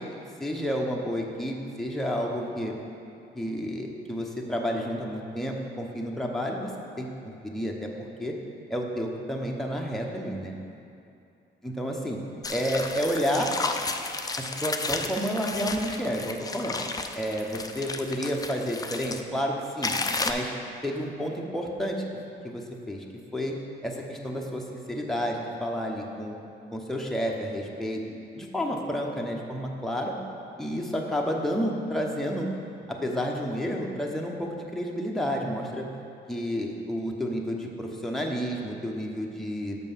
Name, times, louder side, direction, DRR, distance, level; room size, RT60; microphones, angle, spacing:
voice 1, 0.4-2.7 3.3-6.7 7.0-7.1 7.4-7.9 8.2-8.3 8.7-10.5 11.6-12.2 12.5-13.5 14.4-16.8 17.2-19.9 20.2-20.5 20.8-22.0 22.4-23.0 23.3-23.5 23.8-26.3 26.7-30.1 30.6-32.5 32.9-35.9 36.3-39.8, equal, ahead, -1 dB, 0.9 m, -30 dB
sound 1, 12.4-19.2 19.8-20.3, left 3 dB, 20° left, 0.4 m, -32 dB
6.7 x 5.3 x 5.5 m, 2.6 s
cardioid pair, 90°, 20 cm